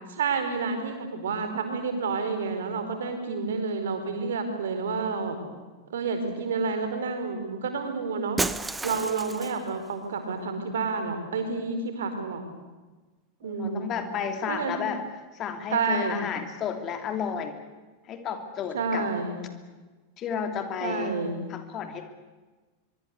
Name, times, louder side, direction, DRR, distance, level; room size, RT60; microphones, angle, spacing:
voice 1, 0.1-5.4 5.9-8.4 8.8-12.4 13.4-14.0 14.5-15.0 15.7-16.2 18.7-19.4 20.8-21.4, right 4 dB, 60° right, 7 dB, 4.7 m, -29 dB
Shatter, 8.4-9.7, right 3 dB, 10° right, 1.0 m, -31 dB
voice 2, 13.4-15.0 15.3-17.6 18.1-19.1 20.2-21.1 21.5-22.0, left 7 dB, 30° left, 7 dB, 2.8 m, -32 dB
24.0 x 23.5 x 8.4 m, 1.3 s
figure-of-eight pair, 90°, 0 cm